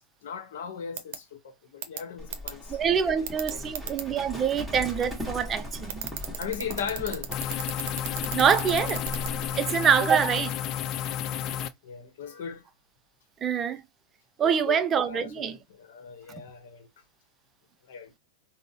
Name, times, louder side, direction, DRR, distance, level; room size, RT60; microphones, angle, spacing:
voice 1, 0.0-3.2 3.5-3.8 6.4-7.3 11.8-12.6 14.4-16.9 17.9-18.1, left 7 dB, 75° left, 0.8 m, -38 dB
sound 1, 1.0-1.2 1.8-2.0 2.3-2.5 3.3-4.0 5.9-9.3, right 10 dB, 70° right, 0.6 m, -33 dB
Livestock farm animals working animals, 2.2-9.5, left 1 dB, ahead, 1.1 m, -39 dB
voice 2, 2.7-6.1 8.3-9.0 9.6-10.5 13.4-13.8 14.4-15.6 16.3-16.4, right 7 dB, 25° right, 0.4 m, -25 dB
sound 2, 7.3-11.7, left 10 dB, 40° left, 0.4 m, -31 dB
3.7 x 2.0 x 2.6 m
hypercardioid pair, 125°, 0 cm